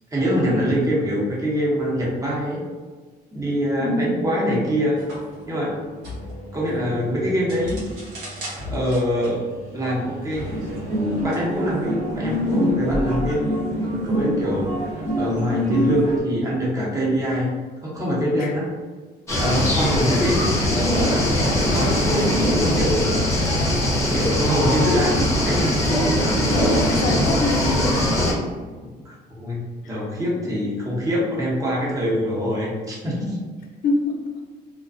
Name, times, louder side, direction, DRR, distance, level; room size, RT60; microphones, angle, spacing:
voice 1, 0.1-2.6 3.3-5.0 5.5-5.8 6.5-7.8 8.7-9.4 9.7-10.5 11.2-14.7 15.2-17.5 17.8-18.6 19.4-21.3 21.7-23.1 23.3-23.6 24.1-25.6 29.0-33.4, equal, 20° right, -5 dB, 0.8 m, -24 dB
sound 1, 5.0-11.5, equal, 90° right, 0.8 m, -37 dB
sound 2, 10.4-16.2, equal, 45° right, 0.9 m, -25 dB
sound 3, 19.3-28.3, left 1 dB, 15° left, 0.7 m, -21 dB
voice 2, 26.5-27.9 33.8-34.2, left 2 dB, 60° left, 2 dB, 0.5 m, -24 dB
2.4 x 2.2 x 2.5 m, 1.4 s
cardioid pair, 110°, 17 cm